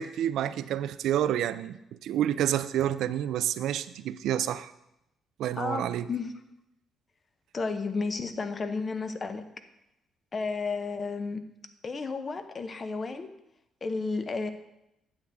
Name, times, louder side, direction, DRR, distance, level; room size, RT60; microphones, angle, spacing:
voice 1, 0.0-4.7 5.4-6.1, right 11 dB, 80° right, 13 dB, 0.4 m, -29 dB
voice 2, 5.6-6.3 7.5-9.4 10.3-11.4 11.8-13.3 13.8-14.5, left 4 dB, 35° left, 9 dB, 0.8 m, -32 dB
9.1 x 8.0 x 3.5 m, 0.86 s
cardioid pair, 90°, 0 cm